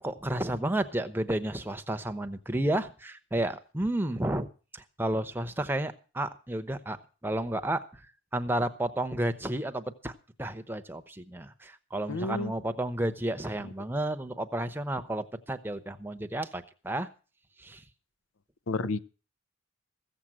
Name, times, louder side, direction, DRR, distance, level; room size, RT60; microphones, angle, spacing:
voice 1, 0.0-4.5 4.7-7.0 7.2-8.0 8.3-10.1 10.4-17.1 17.6-17.8 18.8-18.9, right 1 dB, 10° right, 0.8 m, -31 dB
voice 2, 12.1-12.5 18.7-19.0, left 3 dB, 75° left, 0.7 m, -30 dB
15.5 x 7.5 x 7.7 m
head